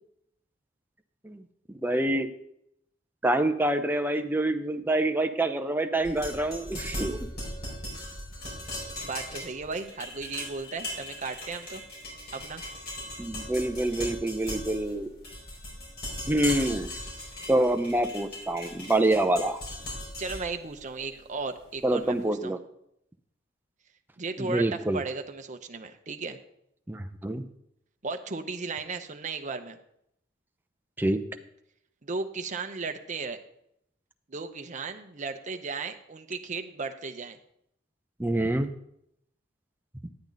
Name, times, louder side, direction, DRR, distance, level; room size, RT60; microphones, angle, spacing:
voice 1, 1.7-2.3 3.2-7.3 13.2-15.1 16.3-16.9 17.5-19.6 21.8-22.6 24.4-25.0 26.9-27.4 31.0-31.2 38.2-38.7, right 1 dB, 10° right, 6 dB, 0.6 m, -26 dB
sound 1, 6.0-22.0, left 1 dB, 55° left, 4.9 m, -39 dB
voice 2, 9.0-11.8 12.3-12.6 20.2-22.5 24.2-26.4 28.0-29.8 32.0-33.4 34.3-37.4, right 4 dB, 40° right, 7 dB, 0.7 m, -35 dB
10.5 x 8.7 x 3.9 m, 0.75 s
head